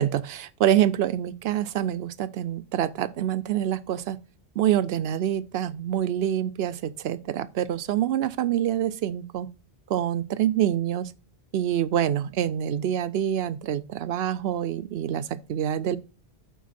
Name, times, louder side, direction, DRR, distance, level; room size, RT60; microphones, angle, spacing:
voice 1, 0.0-4.2 4.6-9.5 9.9-11.1 11.5-16.0, right 11 dB, 75° right, 0.8 m, -26 dB
9.3 x 4.0 x 4.1 m
omnidirectional pair, 1.1 m